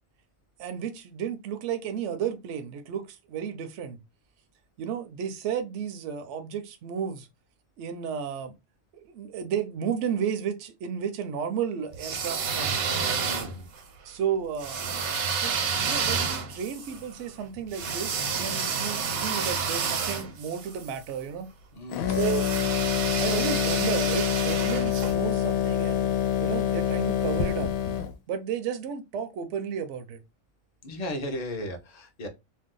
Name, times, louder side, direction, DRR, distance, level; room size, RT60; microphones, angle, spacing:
voice 1, 0.6-4.0 4.8-7.3 7.8-8.5 8.9-12.8 14.0-14.8 15.3-21.5 22.2-22.5 23.2-26.1 26.4-27.7 28.3-30.2, right 8 dB, 65° right, 0.8 m, -33 dB
sound 1, 11.9-13.8 14.6-21.0 22.1-25.1, right 6 dB, 85° right, 1.2 m, -30 dB
voice 2, 13.3-13.6 21.7-22.2 30.8-32.3, left 1 dB, 40° left, 0.6 m, -35 dB
sound 2, 21.9-28.1, left 9 dB, 85° left, 1.0 m, -26 dB
2.7 x 2.2 x 3.6 m
omnidirectional pair, 1.4 m